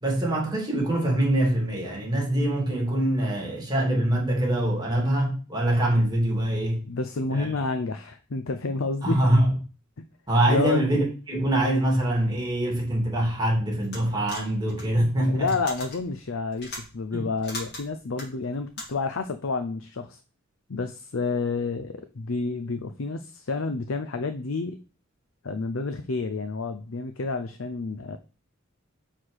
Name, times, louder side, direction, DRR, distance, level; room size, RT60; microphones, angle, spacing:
voice 1, 0.0-6.8 7.3-7.5 9.0-9.5 10.3-15.5 17.1-17.3, right 1 dB, 20° right, 2.6 m, -24 dB
voice 2, 6.9-9.2 10.0-10.1 10.5-11.0 15.3-20.2 20.7-24.8 25.4-28.2, left 3 dB, 80° left, 0.6 m, -29 dB
sound 1, 13.8-19.2, left 2 dB, 55° left, 3.4 m, -41 dB
5.7 x 4.9 x 6.5 m
head